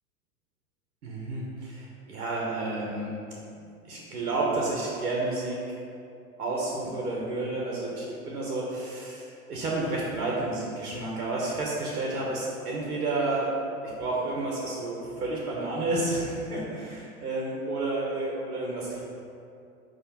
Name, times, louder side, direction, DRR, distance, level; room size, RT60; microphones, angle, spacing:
voice 1, 1.0-3.2 3.7-5.7 6.4-13.6 14.0-19.0, right 2 dB, 90° right, -3 dB, 1.1 m, -31 dB
5.6 x 3.2 x 5.6 m, 2.5 s
hypercardioid pair, 110°, 44 cm